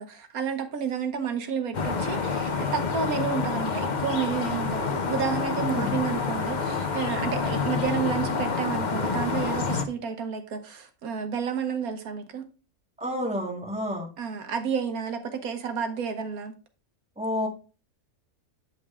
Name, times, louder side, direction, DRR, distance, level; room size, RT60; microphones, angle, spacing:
voice 1, 0.0-12.4 14.2-16.5, right 6 dB, 85° right, 1.5 m, -31 dB
sound 1, 1.7-9.9, left 4 dB, 40° left, 0.8 m, -28 dB
voice 2, 13.0-14.1 17.2-17.5, left 1 dB, 5° right, 1.6 m, -30 dB
8.8 x 5.3 x 3.6 m
omnidirectional pair, 1.5 m